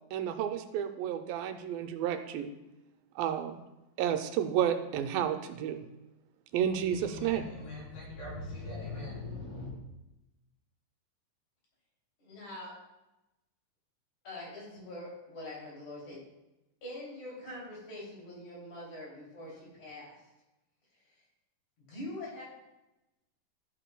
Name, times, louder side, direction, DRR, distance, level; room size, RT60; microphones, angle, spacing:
voice 1, 0.1-2.5 3.2-3.6 4.0-5.8 6.5-7.5, right 9 dB, 85° right, 7 dB, 2.4 m, -31 dB
voice 2, 6.9-9.7, left 2 dB, 75° left, -5 dB, 5.2 m, -41 dB
voice 3, 12.2-12.7 14.2-16.2 16.8-20.2 21.8-22.4, left 1 dB, 55° left, -4 dB, 4.3 m, -44 dB
12.5 x 9.0 x 2.2 m, 0.97 s
omnidirectional pair, 4.1 m